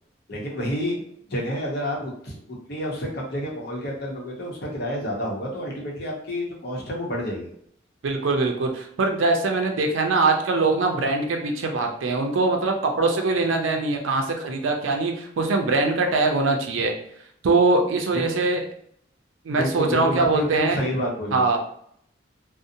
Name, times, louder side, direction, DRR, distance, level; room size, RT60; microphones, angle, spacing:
voice 1, 0.3-1.0 1.3-7.5 18.1-18.3 19.5-21.5, equal, 55° left, -2 dB, 0.7 m, -29 dB
voice 2, 8.0-16.9 17.4-18.6 19.4-20.8 21.3-21.6, right 3 dB, 90° right, 3 dB, 0.4 m, -22 dB
2.7 x 2.0 x 2.5 m, 0.68 s
head